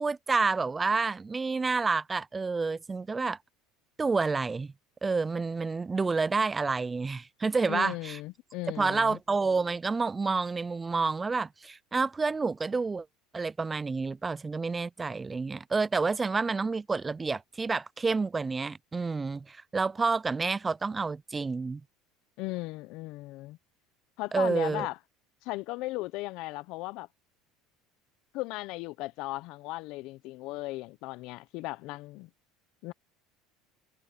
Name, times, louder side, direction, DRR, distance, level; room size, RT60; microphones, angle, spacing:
voice 1, 0.0-3.4 4.0-4.7 5.0-8.2 8.8-13.1 13.3-21.8 24.3-24.9, right 4 dB, 20° right, 0.4 m, -29 dB
voice 2, 7.7-9.2 22.4-23.6 24.2-25.0 25.4-27.1 28.3-32.3 32.8-32.9, left 20 dB, 65° left, 0.7 m, -36 dB
supercardioid pair, 100°, 0 cm